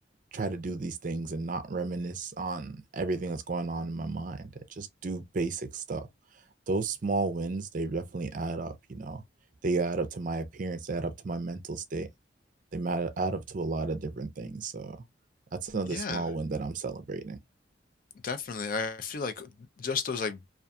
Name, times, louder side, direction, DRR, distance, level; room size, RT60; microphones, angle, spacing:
voice 1, 0.3-6.1 6.7-9.2 9.6-12.1 12.7-15.0 15.5-17.4, right 3 dB, 45° right, 0.4 m, -33 dB
voice 2, 15.9-16.2 18.2-19.5 19.8-20.4, left 5 dB, 45° left, 0.4 m, -32 dB
2.6 x 2.4 x 2.2 m
head